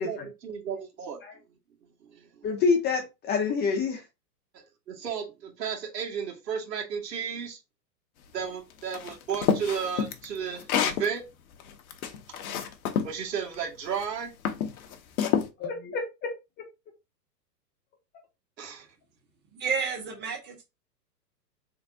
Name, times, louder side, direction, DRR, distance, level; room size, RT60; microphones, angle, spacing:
voice 1, 0.0-1.2 2.0-2.5 4.9-7.6 8.3-11.2 13.0-14.3 18.6-18.9, right 7 dB, 75° right, 1.9 m, -33 dB
voice 2, 2.4-4.0 15.6-16.3, left 5 dB, 20° left, 0.8 m, -27 dB
sound 1, 8.9-11.1 11.6-13.1 13.9-14.1 14.4-15.5, left 8 dB, 55° left, 0.9 m, -28 dB
voice 3, 19.5-20.6, right 5 dB, 20° right, 1.4 m, -31 dB
3.9 x 3.5 x 2.6 m
hypercardioid pair, 120°, 50 cm